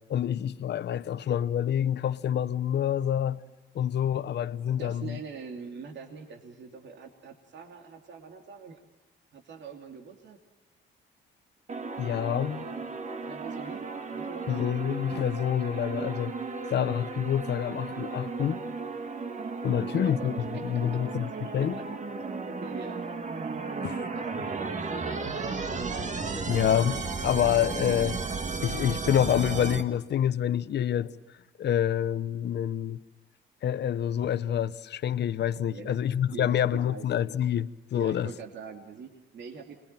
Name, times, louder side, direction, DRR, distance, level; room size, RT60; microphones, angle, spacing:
voice 1, 0.1-3.4 3.7-5.2 12.0-12.6 14.5-16.3 16.7-18.6 19.6-20.4 20.6-21.8 23.8-24.1 26.5-28.2 28.6-31.1 31.6-33.0 33.6-38.3, left 10 dB, 60° left, 0.9 m, -27 dB
voice 2, 4.8-8.8 9.3-10.4 13.2-14.7 19.9-21.0 21.6-21.8 22.2-23.0 23.6-25.1 25.6-25.9 35.7-36.0 36.3-37.1 38.0-39.8, right 5 dB, 65° right, 2.8 m, -44 dB
sound 1, 11.7-29.8, right 4 dB, 40° right, 2.1 m, -34 dB
27.0 x 21.5 x 9.0 m
cardioid pair, 90°, 20 cm